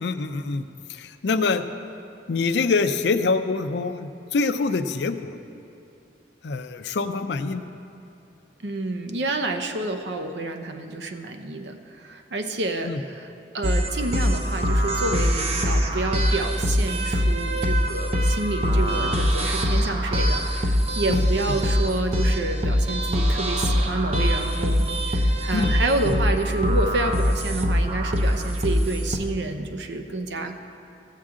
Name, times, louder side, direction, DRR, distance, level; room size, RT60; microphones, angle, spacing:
voice 1, 0.0-0.6 0.9-1.6 2.3-5.3 6.4-7.7 12.8-13.0 21.1-21.2 25.5-25.7 26.0-26.1, left 4 dB, 70° left, 9 dB, 0.5 m, -25 dB
voice 2, 8.6-13.3 13.5-30.6, right 2 dB, 70° right, 6 dB, 0.7 m, -29 dB
sound 1, 13.6-29.2, equal, 35° right, 0.7 m, -23 dB
15.0 x 7.4 x 3.7 m, 2.9 s
head